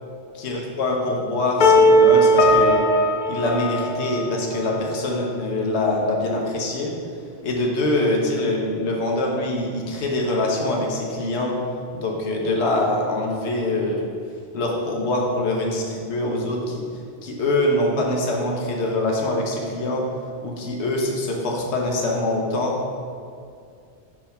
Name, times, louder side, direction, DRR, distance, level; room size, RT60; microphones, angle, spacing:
voice 1, 0.3-2.9 3.3-6.9 7.4-11.5 11.9-14.1 14.5-16.8 17.2-20.0 20.4-22.8, left 2 dB, 75° left, -1 dB, 1.1 m, -24 dB
sound 1, 1.6-4.5, equal, 55° left, 0.5 m, -17 dB
6.1 x 3.3 x 5.6 m, 2.4 s
omnidirectional pair, 1.2 m